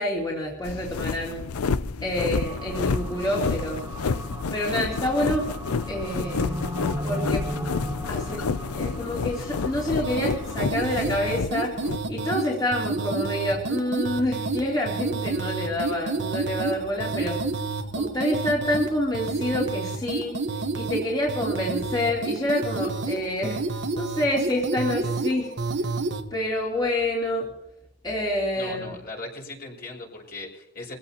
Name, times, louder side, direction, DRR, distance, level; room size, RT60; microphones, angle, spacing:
voice 1, 0.0-1.4 2.0-3.8 4.5-5.5 5.9-6.5 7.0-7.4 8.1-8.4 8.7-11.7 12.1-17.4 17.9-20.4 20.7-23.6 23.9-25.5 26.3-27.5 28.0-28.9, left 1 dB, 20° left, -5 dB, 3.1 m, -27 dB
sound 1, 0.6-12.0, left 5 dB, 80° left, 0.5 m, -29 dB
sound 2, 2.3-10.6, equal, 15° right, 1.6 m, -36 dB
sound 3, 10.0-26.2, right 3 dB, 55° right, 1.2 m, -29 dB
voice 2, 28.5-31.0, left 2 dB, 45° left, -1 dB, 5.6 m, -38 dB
23.5 x 16.0 x 2.9 m, 0.81 s
head